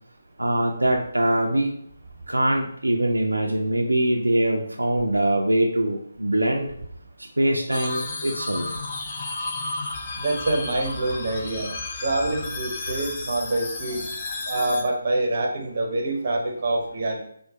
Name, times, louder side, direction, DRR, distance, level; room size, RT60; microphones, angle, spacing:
voice 1, 0.4-1.7 2.3-6.7 7.4-8.6, right 1 dB, 80° right, 1 dB, 0.4 m, -23 dB
sound 1, 7.7-14.8, left 3 dB, 30° left, 0.5 m, -33 dB
voice 2, 10.2-11.7 12.0-14.1 14.5-17.3, right 2 dB, 40° right, 1 dB, 0.7 m, -26 dB
4.6 x 2.2 x 2.3 m, 0.68 s
figure-of-eight pair, 150°, 0 cm